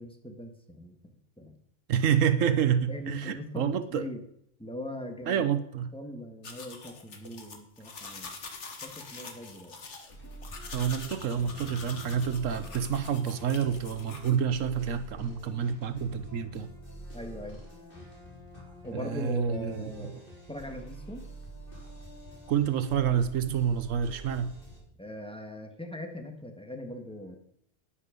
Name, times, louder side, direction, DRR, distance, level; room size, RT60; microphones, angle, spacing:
voice 1, 0.0-1.6 2.9-4.2 4.6-5.5 5.9-8.4 8.8-9.8 17.1-17.6 18.8-20.2 20.5-21.2 25.0-27.4, left 1 dB, 5° left, 4 dB, 1.7 m, -41 dB
voice 2, 1.9-4.1 5.3-5.9 10.7-16.7 18.9-19.9 22.5-24.6, right 8 dB, 85° right, 12 dB, 1.2 m, -28 dB
sound 1, 6.4-14.4, left 4 dB, 65° left, 1.8 m, -45 dB
sound 2, 10.1-24.8, equal, 45° left, 4.2 m, -46 dB
11.5 x 10.0 x 5.2 m, 0.72 s
omnidirectional pair, 1.3 m